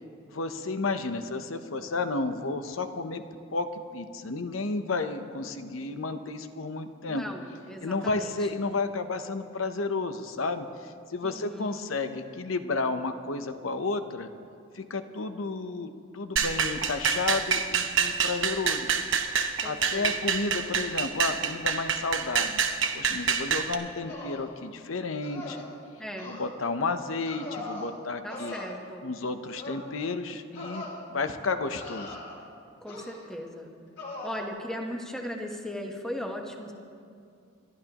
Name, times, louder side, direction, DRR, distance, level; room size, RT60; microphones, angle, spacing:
voice 1, 0.3-3.2 3.5-7.2 7.8-14.3 14.7-18.9 19.6-25.6 26.3-28.6 29.0-32.2, left 3 dB, 75° left, 9 dB, 0.8 m, -32 dB
voice 2, 7.1-8.4 11.2-11.9 19.6-20.1 26.0-26.3 28.2-29.1 32.8-33.7 34.2-36.7, equal, 5° left, 1 dB, 1.2 m, -38 dB
sound 1, 16.4-23.7, right 6 dB, 65° right, 1.0 m, -27 dB
sound 2, 24.1-24.5 25.2-25.7 26.2-26.5 27.2-27.9 28.3-28.7 29.6-29.9 30.5-30.9 31.7-32.4 32.9-33.3 34.0-34.5, left 2 dB, 55° left, 3.6 m, -40 dB
29.5 x 12.0 x 3.0 m, 2.4 s
head